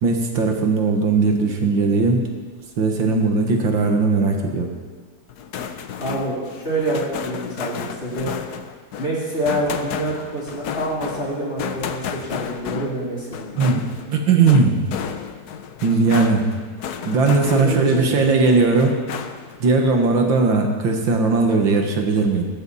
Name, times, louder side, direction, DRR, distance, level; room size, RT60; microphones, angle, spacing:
voice 1, 0.0-2.3 2.8-4.7 13.6-13.8 14.1-14.8 15.8-16.5 17.1-19.0 19.6-22.5, right 4 dB, 85° right, 3 dB, 2.3 m, -18 dB
sound 1, 5.3-18.1 18.4-19.6, left 7 dB, 65° left, 1.2 m, -32 dB
voice 2, 6.0-8.3 9.0-13.5 17.4-18.1, right 1 dB, 35° left, -6 dB, 4.1 m, -26 dB
17.5 x 13.5 x 4.2 m, 1.5 s
omnidirectional pair, 2.0 m